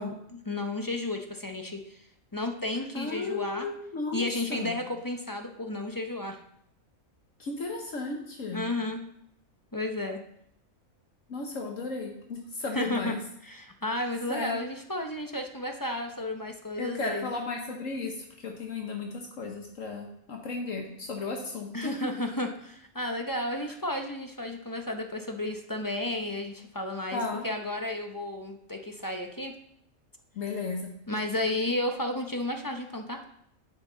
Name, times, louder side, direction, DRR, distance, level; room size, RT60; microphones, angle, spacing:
voice 1, 0.0-2.1 2.3-3.7 4.1-6.4 8.5-9.0 9.7-10.2 12.7-13.2 13.4-17.3 21.7-29.5 31.1-33.2, left 1 dB, 20° left, 4 dB, 0.5 m, -33 dB
voice 2, 2.9-4.2 4.5-4.8 7.4-8.6 11.3-13.2 14.3-14.6 16.8-21.9 27.1-27.5 30.3-30.9, left 3 dB, 65° left, 2 dB, 1.4 m, -34 dB
9.6 x 7.2 x 3.9 m, 0.72 s
omnidirectional pair, 1.5 m